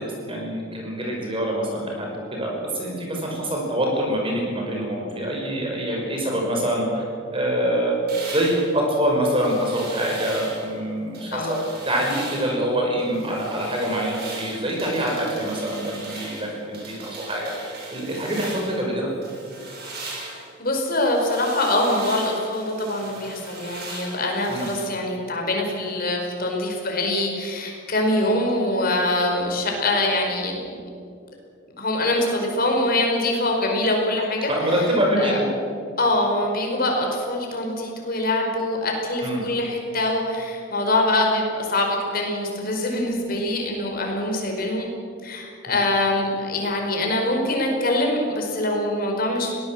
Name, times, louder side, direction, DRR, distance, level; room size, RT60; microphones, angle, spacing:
voice 1, 0.0-7.1 7.3-8.0 8.3-19.1 24.5-24.7 34.5-35.5 39.2-39.4, right 1 dB, 25° right, -1 dB, 5.5 m, -25 dB
sound 1, 8.1-10.7 11.1-12.6 13.0-18.9 19.2-24.8, right 2 dB, 50° right, 7.0 m, -39 dB
voice 2, 11.3-11.6 20.2-30.6 31.8-34.7 35.2-35.4 36.0-44.9 45.2-49.5, left 1 dB, 45° left, 1 dB, 4.9 m, -24 dB
22.5 x 18.5 x 7.7 m, 2.4 s
head